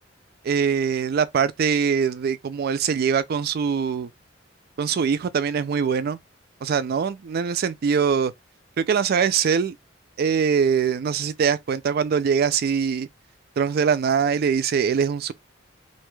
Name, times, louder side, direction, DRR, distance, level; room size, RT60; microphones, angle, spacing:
voice 1, 0.4-4.1 4.8-6.2 6.6-8.3 8.8-9.8 10.2-13.1 13.6-15.3, right 6 dB, 55° right, 0.3 m, -22 dB
2.6 x 2.3 x 3.0 m
head